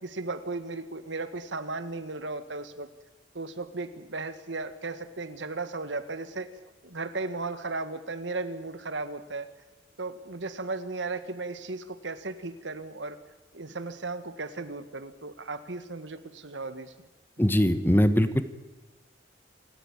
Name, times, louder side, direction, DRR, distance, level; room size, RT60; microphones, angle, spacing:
voice 1, 0.0-2.9 3.3-6.5 6.8-9.5 10.0-13.2 13.5-17.1 17.4-17.6, right 3 dB, 75° right, 11 dB, 1.6 m, -36 dB
voice 2, 17.4-18.4, equal, 10° left, 12 dB, 1.1 m, -21 dB
27.5 x 14.0 x 8.8 m, 1.2 s
head